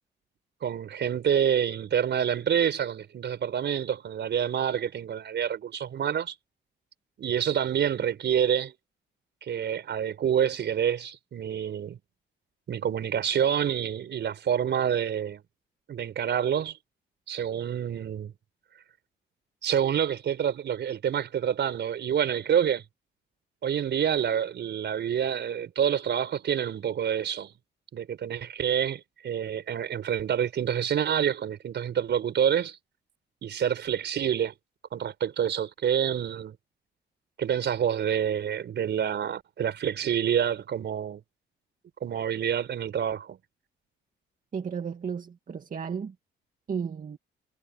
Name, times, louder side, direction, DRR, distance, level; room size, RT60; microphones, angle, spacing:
voice 1, 0.6-6.3 7.2-8.7 9.4-12.0 12.7-15.4 15.9-16.8 17.3-18.3 19.6-22.8 23.6-27.5 27.9-32.8 33.4-34.5 34.9-36.6 37.4-41.2 42.0-43.4, right 9 dB, 60° right, 4.8 m, -27 dB
voice 2, 44.5-46.1 46.7-47.2, right 6 dB, 45° right, 2.2 m, -33 dB
cardioid pair, 90°, 20 cm